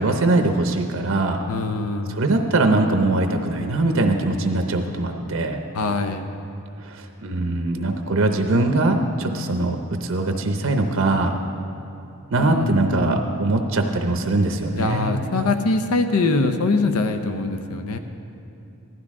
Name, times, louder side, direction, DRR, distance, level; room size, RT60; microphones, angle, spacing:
voice 1, 0.0-1.4 2.1-5.6 6.9-11.3 12.3-15.1, right 2 dB, 65° right, 4 dB, 0.7 m, -21 dB
voice 2, 1.5-2.2 5.7-6.3 12.4-13.2 14.8-18.0, left 3 dB, 85° left, 7 dB, 0.6 m, -23 dB
16.0 x 12.0 x 3.6 m, 2.6 s
head